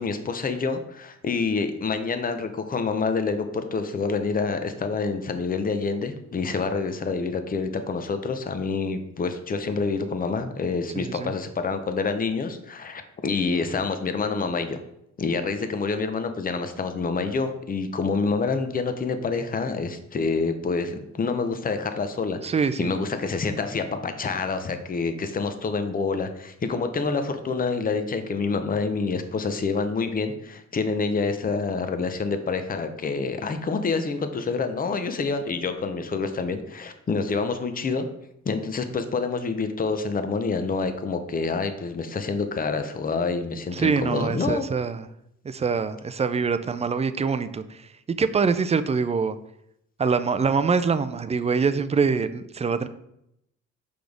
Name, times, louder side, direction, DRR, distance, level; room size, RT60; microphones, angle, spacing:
voice 1, 0.0-14.8 15.2-22.4 22.8-38.1 38.4-44.6, left 4 dB, 30° left, 8 dB, 0.7 m, -27 dB
voice 2, 11.0-11.3 22.4-22.9 43.7-45.1 45.4-49.4 50.0-52.9, right 5 dB, 20° right, 11 dB, 0.4 m, -24 dB
6.0 x 5.1 x 3.5 m, 0.79 s
cardioid pair, 90°, 30 cm